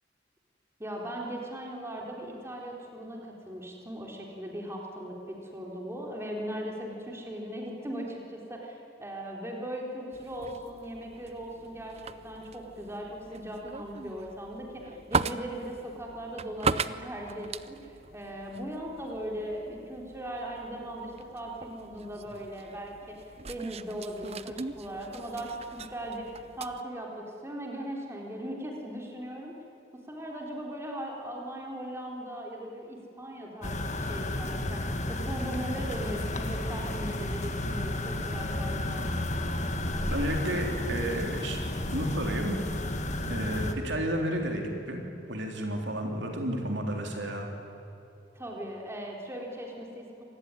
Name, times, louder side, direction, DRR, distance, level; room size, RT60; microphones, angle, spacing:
voice 1, 0.8-23.2 23.5-29.5 29.9-39.1 48.3-50.2, equal, 15° right, -1 dB, 3.9 m, -39 dB
sound 1, 10.1-26.8, right 5 dB, 35° right, 0.6 m, -39 dB
sound 2, 33.6-43.7, left 1 dB, 40° left, 1.8 m, -32 dB
voice 2, 40.1-41.6 41.9-42.6 43.3-45.0 45.3-47.5, right 1 dB, 65° right, 2 dB, 3.6 m, -31 dB
26.5 x 19.5 x 9.9 m, 2.9 s
head